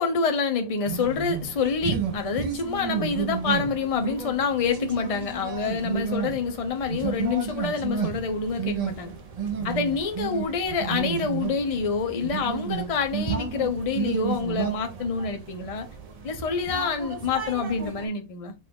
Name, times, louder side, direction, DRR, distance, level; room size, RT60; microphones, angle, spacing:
voice 1, 0.0-9.1 9.6-15.9 16.2-18.5, left 5 dB, 35° left, 0.7 m, -27 dB
sound 1, 0.9-18.1, right 6 dB, 35° right, 0.7 m, -32 dB
5.3 x 2.5 x 3.6 m
omnidirectional pair, 1.4 m